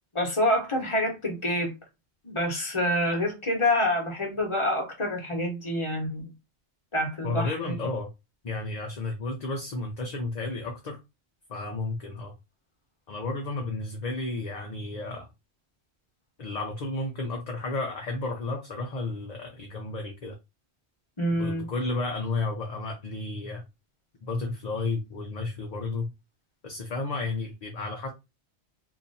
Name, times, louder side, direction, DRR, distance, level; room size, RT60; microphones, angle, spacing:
voice 1, 0.1-1.7 2.2-6.3 6.9-7.7 21.2-21.7, left 1 dB, 30° left, 1.1 m, -27 dB
voice 2, 7.2-8.1 8.4-11.0 11.5-12.3 13.1-15.3 16.4-20.4 21.4-23.6 24.3-26.1 26.6-28.1, left 3 dB, 45° left, 0.7 m, -32 dB
2.9 x 2.4 x 3.9 m
omnidirectional pair, 1.1 m